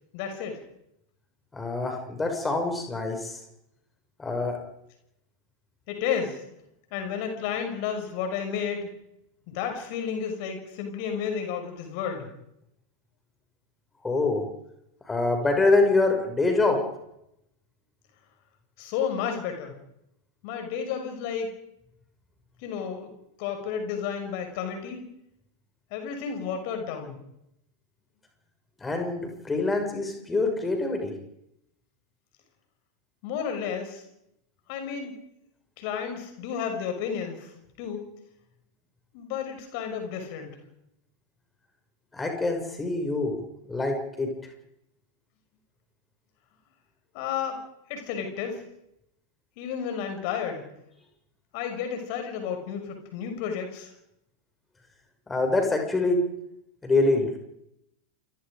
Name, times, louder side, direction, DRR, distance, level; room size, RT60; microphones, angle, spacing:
voice 1, 0.1-0.6 5.9-6.4 6.9-8.9 9.5-12.3 18.8-19.7 20.4-21.5 22.6-23.1 23.4-25.1 25.9-27.2 33.2-34.0 34.7-35.2 35.8-37.5 37.8-38.1 39.1-40.6 47.1-47.6 47.9-48.6 49.6-50.7 51.5-53.9, left 7 dB, 45° left, 6 dB, 6.0 m, -32 dB
voice 2, 1.5-3.4 4.2-4.6 14.0-14.4 15.1-16.8 28.8-31.1 42.1-43.3 43.7-44.3 55.3-56.2 56.8-57.3, left 3 dB, 10° left, 4 dB, 6.4 m, -25 dB
28.5 x 24.0 x 5.2 m, 0.81 s
figure-of-eight pair, 90°, 0 cm